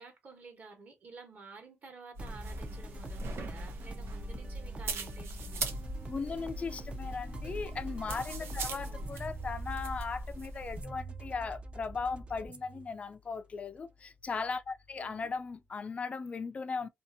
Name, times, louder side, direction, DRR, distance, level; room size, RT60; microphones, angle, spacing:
voice 1, 0.0-5.7 8.8-9.1 15.0-15.3, right 4 dB, 45° right, 1.1 m, -52 dB
sound 1, 2.1-10.8, right 2 dB, 85° right, 0.8 m, -40 dB
sound 2, 2.2-15.6, right 1 dB, 25° right, 0.4 m, -45 dB
voice 2, 6.1-16.9, left 4 dB, 30° left, 0.4 m, -38 dB
2.7 x 2.5 x 2.6 m
wide cardioid pair, 150°, 4 cm